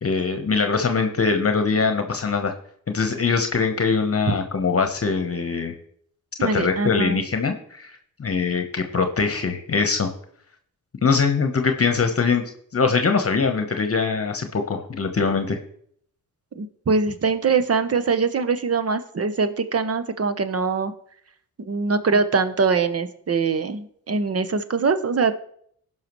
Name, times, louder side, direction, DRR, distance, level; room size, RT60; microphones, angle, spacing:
voice 1, 0.0-2.5 2.9-5.7 6.4-10.1 11.0-15.6, left 5 dB, 45° left, 6 dB, 1.1 m, -22 dB
voice 2, 6.4-7.2 16.6-20.9 21.6-25.4, right 4 dB, 45° right, 11 dB, 1.0 m, -23 dB
16.5 x 5.7 x 3.1 m, 0.64 s
supercardioid pair, 45°, 34 cm